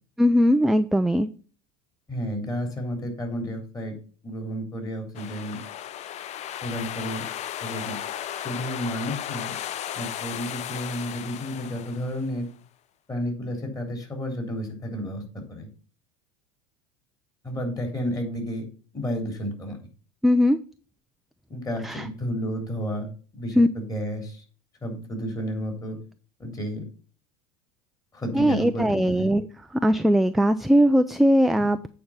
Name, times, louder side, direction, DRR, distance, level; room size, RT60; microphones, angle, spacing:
voice 1, 0.2-1.3 20.2-20.6 21.8-22.0 23.6-23.7 28.3-29.5 29.7-31.9, equal, ahead, 10 dB, 0.4 m, -20 dB
voice 2, 2.1-3.9 4.2-5.9 6.6-7.2 7.6-8.0 8.4-9.5 9.9-12.5 13.1-15.7 17.4-18.6 18.9-19.8 21.5-24.4 24.8-26.0 26.4-26.8 28.1-29.3, equal, 20° left, 3 dB, 3.3 m, -31 dB
sound 1, 5.1-12.4, left 11 dB, 40° left, 0.6 m, -35 dB
8.6 x 4.8 x 5.5 m, 0.39 s
hypercardioid pair, 95°, 17 cm